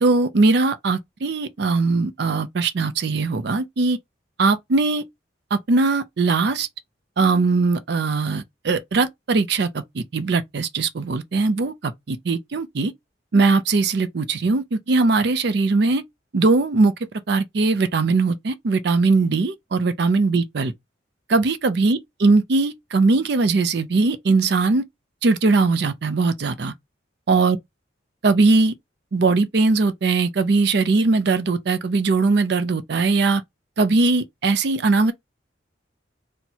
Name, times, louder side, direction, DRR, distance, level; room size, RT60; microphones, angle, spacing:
voice 1, 0.0-4.0 4.4-5.0 5.5-6.7 7.2-12.9 13.3-16.0 16.3-16.9 17.3-20.7 21.3-24.8 25.2-26.7 27.3-27.6 28.2-28.7 29.1-33.4 33.8-35.1, right 3 dB, 60° right, 0.4 m, -20 dB
4.3 x 2.1 x 2.8 m
head